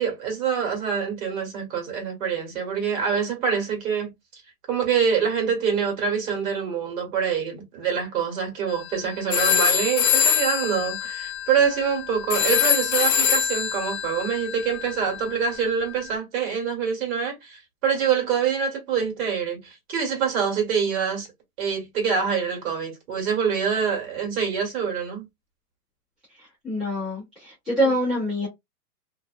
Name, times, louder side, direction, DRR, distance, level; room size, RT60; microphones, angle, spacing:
voice 1, 0.0-4.1 4.7-21.3 21.6-25.2, right 7 dB, 60° right, 1.5 m, -25 dB
sound 1, 8.7-8.9 9.3-16.0, left 9 dB, 60° left, 0.6 m, -24 dB
voice 2, 26.3-28.5, equal, ahead, 0.3 m, -25 dB
2.6 x 2.1 x 2.3 m
hypercardioid pair, 135°, 47 cm